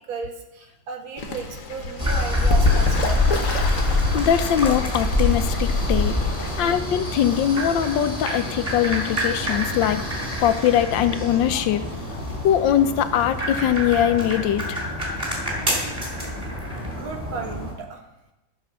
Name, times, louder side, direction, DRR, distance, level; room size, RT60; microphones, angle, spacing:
voice 1, 0.1-3.2 6.4-6.7 15.1-15.2 16.8-18.0, right 5 dB, 85° right, 3 dB, 2.2 m, -35 dB
Fowl / Bird, 1.2-6.6, left 2 dB, 50° left, 1.4 m, -30 dB
sound 1, 2.0-17.7, left 2 dB, 20° right, 3.3 m, -25 dB
voice 2, 4.1-11.8 12.4-14.8, left 10 dB, 75° left, 10 dB, 1.3 m, -22 dB
sound 2, 10.9-16.5, right 1 dB, 65° right, 5.8 m, -46 dB
13.5 x 5.2 x 6.5 m, 0.95 s
omnidirectional pair, 2.1 m